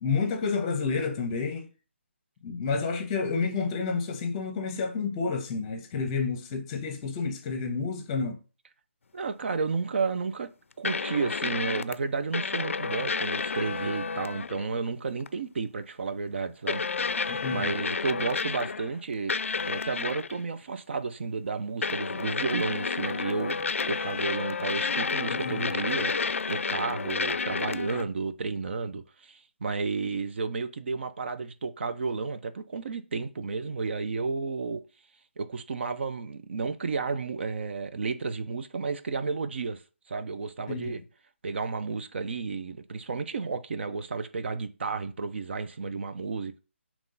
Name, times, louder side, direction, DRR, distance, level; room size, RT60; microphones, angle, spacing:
voice 1, 0.0-1.7 2.4-8.4 17.3-17.7 25.3-25.7 40.7-40.9, left 4 dB, 25° left, 0.8 m, -30 dB
voice 2, 9.1-10.5 10.8-16.8 17.1-19.3 19.7-23.6 23.9-26.1 26.5-34.8 35.4-39.8 40.1-41.0 41.4-46.6, right 4 dB, 60° right, 0.5 m, -32 dB
sound 1, 10.8-11.9 12.3-14.7 15.2-15.4 16.7-19.0 19.3-20.4 21.8-28.0, left 5 dB, 80° left, 0.3 m, -30 dB
3.7 x 3.0 x 3.8 m
hypercardioid pair, 160°, 7 cm